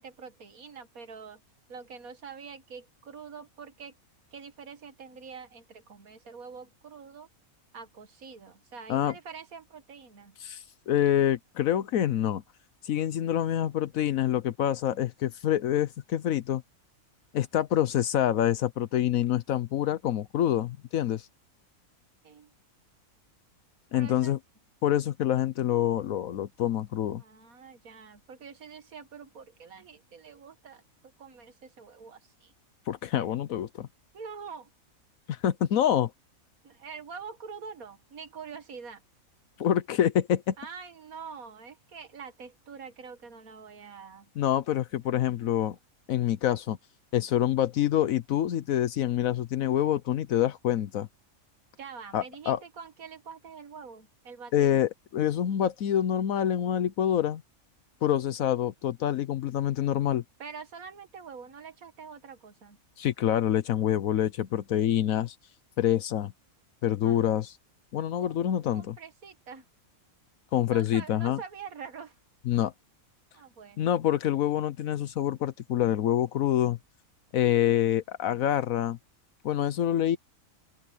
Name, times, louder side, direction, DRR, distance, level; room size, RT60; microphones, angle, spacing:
voice 1, 0.0-1.4 1.7-3.9 4.3-7.3 7.7-10.4 22.2-22.5 23.9-24.4 27.2-30.8 31.2-32.5 34.1-34.7 36.6-39.0 40.6-44.3 51.8-54.9 60.4-62.8 67.0-67.2 68.2-68.4 68.7-69.7 70.7-72.2 73.3-74.0, right 5 dB, 80° right, 2.0 m, -45 dB
voice 2, 10.4-12.4 12.8-16.6 17.3-21.3 23.9-24.4 24.8-27.2 32.9-33.9 35.3-36.1 39.6-40.6 44.4-45.8 46.1-46.8 47.1-51.1 52.1-52.6 54.5-57.4 58.0-60.2 63.0-65.4 65.8-66.3 66.8-67.6 67.9-69.0 70.5-71.4 72.5-72.7 73.8-76.8 77.3-79.0 79.4-80.2, left 11 dB, 80° left, 1.2 m, -26 dB
open air
omnidirectional pair, 1.5 m